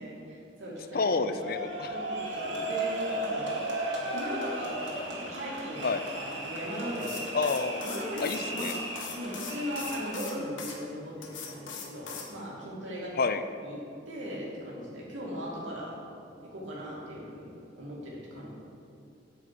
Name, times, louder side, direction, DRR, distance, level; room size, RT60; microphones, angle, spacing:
voice 1, 0.0-1.4 1.9-3.6 4.1-7.2 7.8-8.7 9.1-13.1 13.6-13.8 14.1-16.0 16.4-18.5, equal, 90° right, -5 dB, 2.7 m, -38 dB
voice 2, 0.9-2.0 5.8-6.0 7.3-7.9 8.2-8.7 13.2-13.4, left 4 dB, 50° left, 10 dB, 0.6 m, -29 dB
sound 1, 1.4-10.3, right 1 dB, 70° right, 2.3 m, -35 dB
sound 2, 6.9-10.8 11.2-12.3, left 5 dB, 90° left, 1.4 m, -41 dB
9.2 x 6.2 x 7.7 m, 2.8 s
head